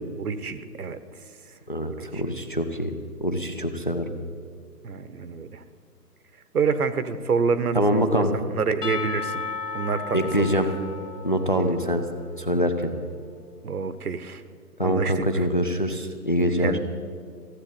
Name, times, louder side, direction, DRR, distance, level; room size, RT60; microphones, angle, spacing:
voice 1, 0.2-1.0 1.9-2.2 4.8-5.6 6.5-8.2 8.5-9.5 9.7-10.6 11.5-11.8 13.6-14.4 14.8-15.5 16.4-16.8, right 5 dB, 65° right, 12 dB, 1.0 m, -27 dB
voice 2, 1.7-2.9 3.2-4.0 7.7-8.3 10.1-10.7 11.2-12.0 12.4-12.9 14.8-16.7, equal, 35° left, 7 dB, 0.5 m, -24 dB
Percussion / Church bell, 8.8-12.7, left 5 dB, 70° left, 1.3 m, -35 dB
15.0 x 8.2 x 8.7 m, 2.1 s
hypercardioid pair, 170°, 49 cm